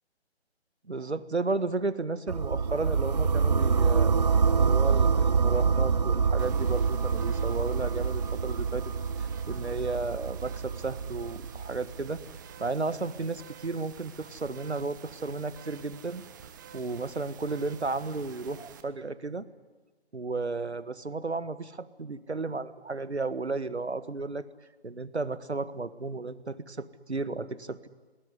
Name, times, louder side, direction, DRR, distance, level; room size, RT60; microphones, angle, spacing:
voice 1, 0.9-4.1 4.5-8.8 9.2-12.2 12.6-16.2 16.7-19.5 20.1-24.5 24.8-27.9, right 3 dB, 75° right, 15 dB, 1.8 m, -33 dB
sound 1, 2.3-12.2, right 5 dB, 40° right, 0.8 m, -26 dB
sound 2, 6.4-18.8, right 8 dB, 20° right, 1.3 m, -50 dB
28.0 x 19.5 x 9.8 m, 1.3 s
figure-of-eight pair, 150°, 33 cm